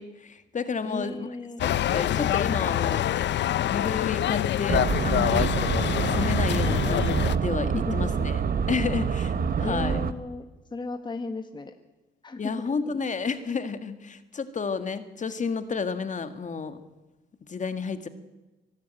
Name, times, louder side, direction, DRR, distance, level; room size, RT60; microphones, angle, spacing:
voice 1, 0.0-1.3 1.6-3.1 3.7-5.5 6.1-8.4 8.7-10.0 12.4-16.8 17.5-18.1, left 5 dB, 40° left, 10 dB, 1.8 m, -31 dB
voice 2, 0.8-1.6 7.5-8.1 9.6-10.4 10.7-11.7 12.2-12.5, left 3 dB, 25° left, 7 dB, 1.5 m, -34 dB
sound 1, 1.6-7.3, left 11 dB, 65° left, 0.7 m, -26 dB
sound 2, 4.7-10.1, right 6 dB, 50° right, 1.2 m, -26 dB
23.5 x 12.0 x 9.1 m, 1.1 s
cardioid pair, 90°, 20 cm